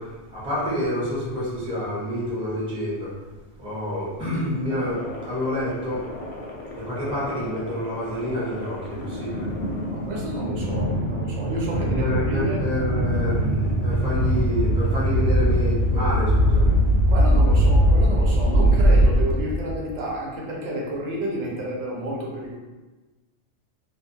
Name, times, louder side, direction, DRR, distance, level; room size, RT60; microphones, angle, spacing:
voice 1, 0.0-3.1 3.6-6.1 6.7-9.5 11.7-16.8, left 1 dB, 5° right, -8 dB, 0.6 m, -28 dB
sound 1, 4.7-19.8, equal, 85° left, 0.9 m, -22 dB
voice 2, 9.9-12.6 17.0-22.6, right 1 dB, 80° right, -3 dB, 0.9 m, -30 dB
2.5 x 2.2 x 2.7 m, 1.2 s
omnidirectional pair, 1.2 m